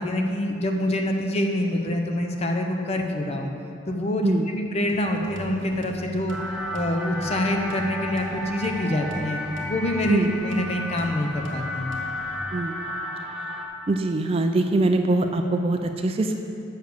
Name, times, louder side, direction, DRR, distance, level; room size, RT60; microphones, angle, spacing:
voice 1, 0.0-3.5 3.9-6.4 6.7-12.0, left 1 dB, 35° left, 3 dB, 0.7 m, -26 dB
sound 1, 4.9-12.4, equal, 80° right, 1.1 m, -41 dB
sound 2, 6.3-13.7, left 1 dB, ahead, 0.7 m, -33 dB
voice 2, 13.9-16.4, right 2 dB, 30° right, 5 dB, 0.4 m, -23 dB
7.0 x 6.5 x 6.5 m, 2.6 s
head